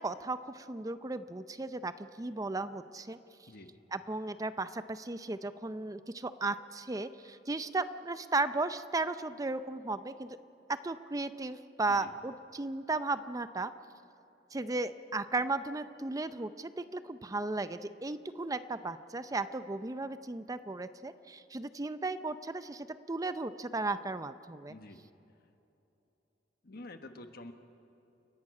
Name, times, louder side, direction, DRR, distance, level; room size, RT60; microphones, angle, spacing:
voice 1, 0.0-3.2 3.9-10.3 10.7-13.7 14.5-24.7, right 3 dB, 20° right, 12 dB, 0.5 m, -35 dB
voice 2, 3.5-3.8 11.9-12.1 24.7-25.1 26.6-27.5, left 2 dB, 60° left, 7 dB, 1.4 m, -48 dB
29.0 x 11.5 x 8.5 m, 2.9 s
head